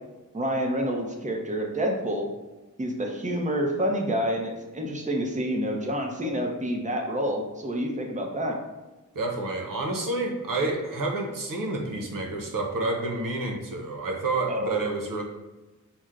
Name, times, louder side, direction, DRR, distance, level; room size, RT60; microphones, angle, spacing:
voice 1, 0.3-2.2 2.8-8.6 14.5-14.8, equal, 25° right, 1 dB, 0.7 m, -28 dB
voice 2, 9.1-15.2, right 2 dB, 85° right, 1 dB, 0.8 m, -29 dB
6.1 x 2.1 x 3.7 m, 1.1 s
wide cardioid pair, 70°, 32 cm